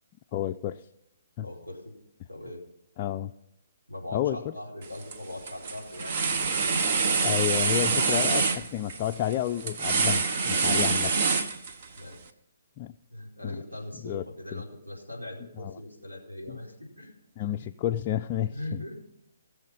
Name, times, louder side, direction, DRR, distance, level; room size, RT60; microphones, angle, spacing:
voice 1, 0.3-0.9 1.4-1.5 3.0-3.3 4.1-4.5 7.2-11.1 12.8-12.9 13.4-13.6 14.0-14.2 14.5-14.6 15.6-15.7 16.5-16.6 17.4-18.8, left 12 dB, 30° left, 4 dB, 0.4 m, -30 dB
voice 2, 1.4-1.9 2.3-2.6 3.9-6.2 8.1-8.3 10.8-11.1 11.9-12.2 13.1-17.1 17.4-17.6 18.5-19.0, left 1 dB, 85° right, -1 dB, 4.7 m, -40 dB
sound 1, 4.8-5.1 5.5-12.0, right 4 dB, 45° right, 1.2 m, -26 dB
20.0 x 7.2 x 5.5 m, 0.84 s
figure-of-eight pair, 130°, 0 cm